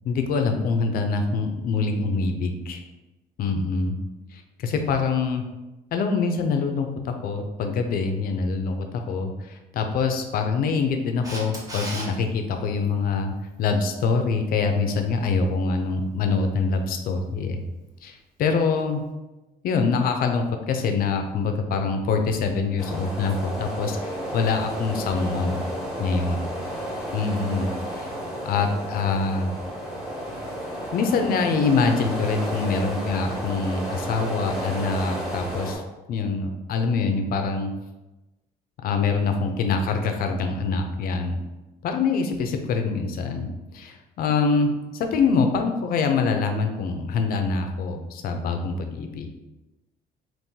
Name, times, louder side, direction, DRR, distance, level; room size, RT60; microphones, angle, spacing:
voice 1, 0.0-2.8 3.4-4.0 4.3-5.4 5.9-13.3 13.6-17.6 18.0-19.0 19.6-25.6 26.0-26.5 27.1-27.7 27.9-28.1 28.5-29.5 30.9-35.8 36.1-37.7 38.8-41.4 41.8-43.5 43.7-49.3, left 4 dB, 60° left, 5 dB, 0.5 m, -25 dB
Camera, 11.2-12.1 18.8-18.9, right 1 dB, 20° right, 0.9 m, -33 dB
sound 1, 22.8-35.7, equal, ahead, 1.2 m, -32 dB
3.7 x 2.6 x 2.7 m, 1.0 s
cardioid pair, 110°, 17 cm